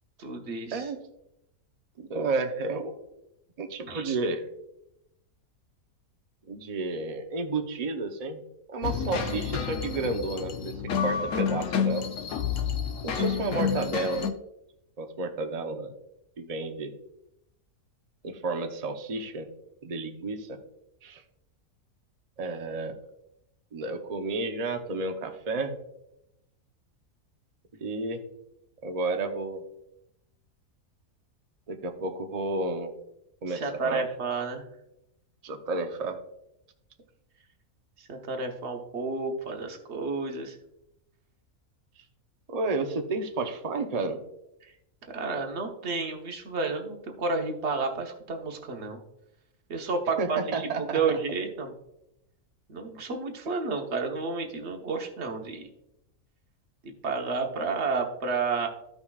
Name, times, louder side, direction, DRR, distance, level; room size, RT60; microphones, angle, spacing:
voice 1, 0.2-0.9 3.9-4.2 33.5-34.6 38.0-40.6 45.0-49.0 49.7-51.7 52.7-55.7 56.8-58.7, right 4 dB, 50° right, 2 dB, 1.4 m, -31 dB
voice 2, 2.0-3.0 3.6-4.4 6.5-8.4 8.7-10.7 11.0-12.0 13.0-14.3 15.0-15.9 16.4-16.9 18.2-19.5 19.8-20.6 21.0-21.2 22.4-23.0 23.7-25.7 27.8-28.2 28.8-29.6 31.7-32.9 33.4-34.0 35.4-36.2 42.5-44.2 50.2-51.0, right 3 dB, 35° right, 4 dB, 0.7 m, -31 dB
sound 1, 8.8-14.3, left 7 dB, 65° left, 1.1 m, -29 dB
15.0 x 5.3 x 2.4 m, 0.84 s
omnidirectional pair, 1.5 m